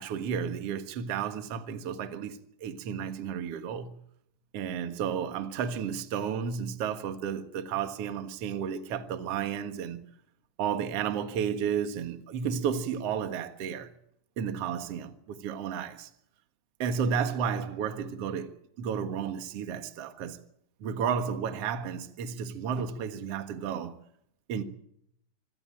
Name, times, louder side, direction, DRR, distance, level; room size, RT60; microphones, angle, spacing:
voice 1, 0.0-4.0 4.5-10.0 10.6-13.9 14.4-16.1 16.8-20.4 20.8-24.0 24.5-24.6, right 7 dB, 50° right, 2.2 m, -32 dB
26.0 x 17.0 x 8.9 m
omnidirectional pair, 4.1 m